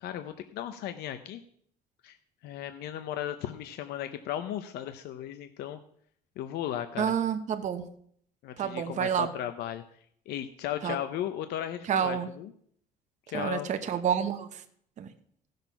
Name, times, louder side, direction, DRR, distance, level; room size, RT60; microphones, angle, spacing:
voice 1, 0.0-1.4 2.0-2.2 2.4-5.8 6.4-7.1 8.4-9.8 10.3-12.5 13.3-13.7, left 11 dB, 75° left, 9 dB, 0.8 m, -36 dB
voice 2, 7.0-7.9 8.6-9.3 10.8-11.0 11.9-12.3 13.3-14.6 15.0-15.1, right 8 dB, 45° right, 7 dB, 1.0 m, -29 dB
15.5 x 6.6 x 5.7 m, 0.63 s
cardioid pair, 135°, 17 cm